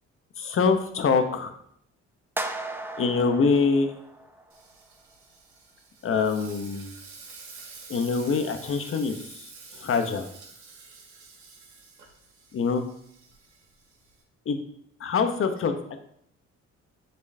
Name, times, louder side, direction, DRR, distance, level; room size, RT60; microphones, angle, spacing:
voice 1, 0.4-1.5 3.0-3.9 6.0-6.9 7.9-10.3 12.5-12.8 14.5-14.6 15.0-15.7, left 5 dB, 45° left, 7 dB, 0.8 m, -24 dB
sound 1, 2.4-4.6, right 2 dB, 5° right, 0.6 m, -36 dB
Frying (food), 4.5-14.2, right 4 dB, 70° right, 1.8 m, -48 dB
8.5 x 4.4 x 2.7 m, 0.71 s
cardioid pair, 90°, 30 cm